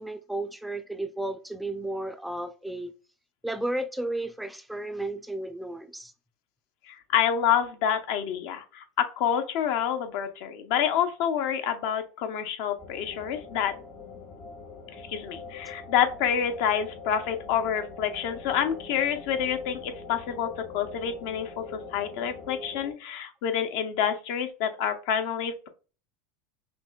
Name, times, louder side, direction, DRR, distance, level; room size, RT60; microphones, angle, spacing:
voice 1, 0.0-2.9 3.4-6.1, right 1 dB, 5° right, 0.3 m, -33 dB
voice 2, 6.9-13.7 15.1-25.7, left 8 dB, 65° left, 0.6 m, -28 dB
sound 1, 12.8-22.9, left 4 dB, 50° left, 1.3 m, -43 dB
5.8 x 2.1 x 2.2 m
hypercardioid pair, 100°, 0 cm